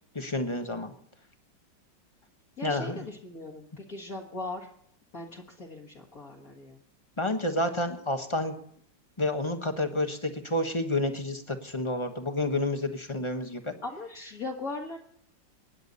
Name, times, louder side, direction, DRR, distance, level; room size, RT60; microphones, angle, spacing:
voice 1, 0.1-0.9 2.6-3.0 7.2-8.6 9.2-13.7, left 1 dB, 20° left, 6 dB, 1.0 m, -29 dB
voice 2, 2.6-4.7 5.1-6.8 13.8-15.0, left 2 dB, 50° left, -1 dB, 2.1 m, -39 dB
24.5 x 10.5 x 4.1 m, 0.65 s
omnidirectional pair, 2.1 m